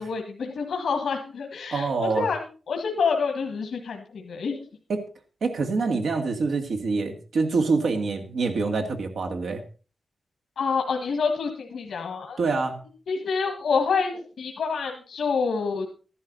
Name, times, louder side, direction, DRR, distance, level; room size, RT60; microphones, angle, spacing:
voice 1, 0.0-4.6 10.6-12.4 13.1-15.9, left 5 dB, 90° left, 3 dB, 1.7 m, -27 dB
voice 2, 1.7-2.3 4.9-5.0 5.4-9.6 12.4-12.8, right 4 dB, 80° right, 4 dB, 1.9 m, -25 dB
13.5 x 11.0 x 4.0 m, 0.36 s
wide cardioid pair, 130°, 0 cm